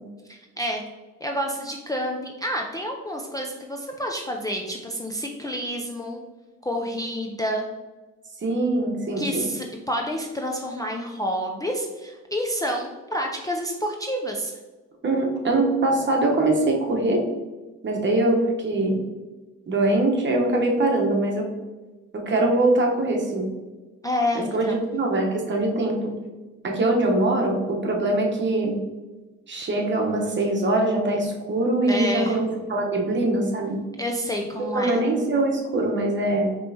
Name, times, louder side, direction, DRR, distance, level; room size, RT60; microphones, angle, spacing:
voice 1, 0.3-0.8 1.2-6.2 6.6-7.7 9.2-14.5 24.0-24.8 31.9-32.4 34.0-35.0, equal, 10° left, 1 dB, 0.4 m, -29 dB
voice 2, 8.4-9.5 15.0-17.3 17.8-19.0 19.7-21.5 22.1-23.5 24.3-26.1 26.6-28.8 29.5-33.8 34.6-36.5, right 2 dB, 40° right, 1 dB, 1.0 m, -23 dB
5.2 x 3.1 x 2.7 m, 1.2 s
cardioid pair, 90°, 30 cm